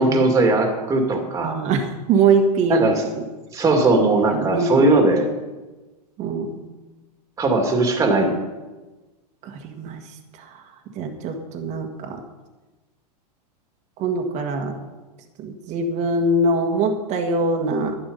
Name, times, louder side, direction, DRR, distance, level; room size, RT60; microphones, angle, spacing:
voice 1, 0.0-1.6 2.7-3.0 3.5-5.3 7.4-8.3, right 2 dB, 15° right, 3 dB, 2.2 m, -19 dB
voice 2, 1.4-2.8 4.3-4.8 6.2-6.5 9.4-10.0 10.9-12.2 14.0-14.8 15.4-18.0, right 3 dB, 35° right, 4 dB, 1.6 m, -22 dB
11.5 x 11.0 x 5.4 m, 1.2 s
hypercardioid pair, 140°, 21 cm